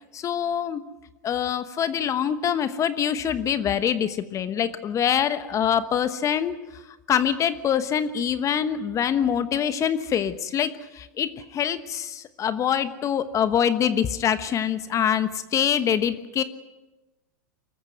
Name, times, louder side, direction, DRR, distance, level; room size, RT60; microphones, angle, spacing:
voice 1, 0.1-0.8 1.2-6.6 7.1-16.4, left 8 dB, 30° left, 13 dB, 1.1 m, -24 dB
24.0 x 14.0 x 9.1 m, 1.1 s
hypercardioid pair, 100°, 10 cm